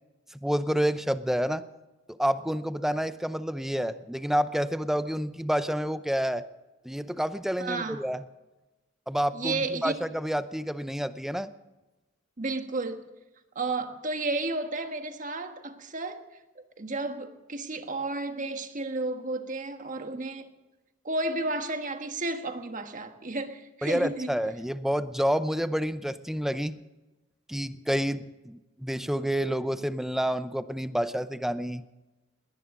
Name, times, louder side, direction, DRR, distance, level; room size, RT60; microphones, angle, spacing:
voice 1, 0.4-1.6 2.1-6.4 6.8-8.2 9.1-11.5 23.8-26.8 27.5-31.8, equal, ahead, 0.6 m, -29 dB
voice 2, 7.6-8.0 9.3-10.0 12.4-13.0 13.5-16.2 16.5-20.5 21.0-24.3, right 2 dB, 45° right, 1.4 m, -32 dB
20.5 x 18.0 x 3.8 m
head